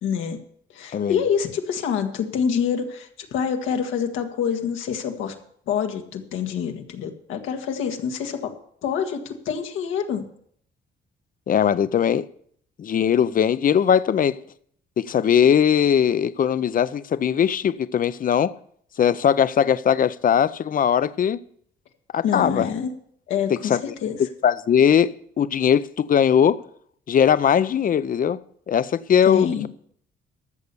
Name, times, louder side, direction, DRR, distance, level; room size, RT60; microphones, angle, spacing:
voice 1, 0.0-0.4 0.7-5.3 5.7-8.5 8.8-10.2 22.2-22.9 23.3-24.2 29.2-29.7, left 7 dB, 85° left, 1.6 m, -26 dB
voice 2, 11.5-12.3 12.8-14.4 15.0-18.5 19.0-21.4 22.1-22.7 23.7-23.8 24.4-26.6 27.1-28.4 28.7-29.7, left 8 dB, 45° left, 0.6 m, -20 dB
13.0 x 6.7 x 6.9 m
cardioid pair, 90°, 20 cm